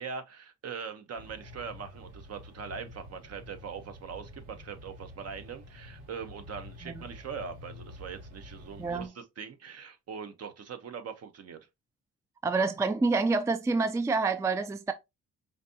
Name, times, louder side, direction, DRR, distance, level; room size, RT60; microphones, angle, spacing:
voice 1, 0.0-11.6, right 6 dB, 55° right, 0.9 m, -41 dB
sound 1, 1.1-9.1, left 1 dB, 90° right, 1.8 m, -48 dB
voice 2, 12.4-14.9, right 3 dB, 10° right, 0.3 m, -27 dB
5.0 x 2.6 x 2.7 m
cardioid pair, 90°, 30 cm